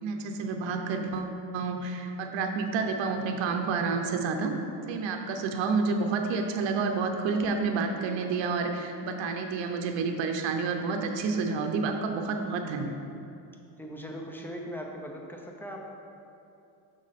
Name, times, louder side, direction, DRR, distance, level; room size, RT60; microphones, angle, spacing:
voice 1, 0.0-4.5 4.9-12.9, right 4 dB, 75° right, 4 dB, 0.8 m, -29 dB
voice 2, 13.8-15.8, equal, 5° left, 0 dB, 0.8 m, -39 dB
6.3 x 5.5 x 4.1 m, 2.7 s
cardioid pair, 95°, 46 cm